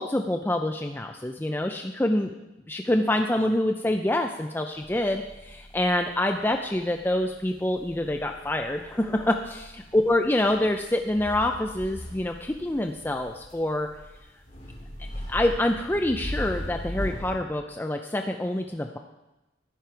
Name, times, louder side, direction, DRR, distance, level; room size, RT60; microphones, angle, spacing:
voice 1, 0.0-2.3 2.7-13.9 15.3-19.0, left 1 dB, 10° left, 4 dB, 0.4 m, -26 dB
sound 1, 4.7-17.4, equal, 35° left, 3.1 m, -40 dB
11.5 x 10.0 x 4.6 m, 0.99 s
head